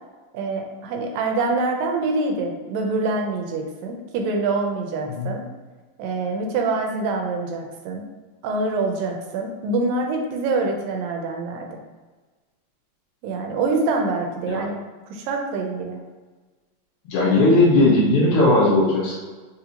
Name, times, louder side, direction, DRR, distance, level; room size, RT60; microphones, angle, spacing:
voice 1, 0.3-5.5 6.0-8.1 8.4-11.8 13.2-14.8 15.1-16.0, right 3 dB, 80° right, 2 dB, 2.3 m, -25 dB
voice 2, 17.1-19.2, left 2 dB, 90° left, -7 dB, 3.0 m, -17 dB
6.5 x 2.7 x 2.8 m, 1.3 s
omnidirectional pair, 4.1 m